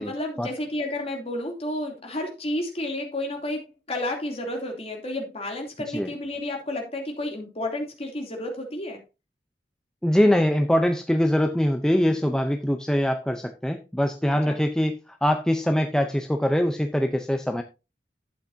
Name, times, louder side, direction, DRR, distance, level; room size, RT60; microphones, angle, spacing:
voice 1, 0.0-9.0 14.4-14.6, left 1 dB, 35° left, 2.9 m, -31 dB
voice 2, 10.0-17.6, equal, 5° left, 0.6 m, -23 dB
12.0 x 8.5 x 2.7 m
head